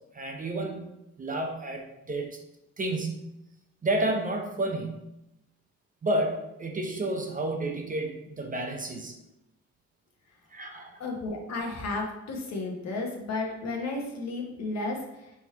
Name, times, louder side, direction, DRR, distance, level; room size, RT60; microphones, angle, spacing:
voice 1, 0.1-0.9 1.2-2.3 2.8-3.3 3.8-5.1 6.0-9.1 10.5-11.0, right 1 dB, 25° right, 2 dB, 0.7 m, -30 dB
voice 2, 11.0-15.3, left 3 dB, 60° left, 0 dB, 1.1 m, -33 dB
3.5 x 3.1 x 4.5 m, 0.88 s
cardioid pair, 90°, 30 cm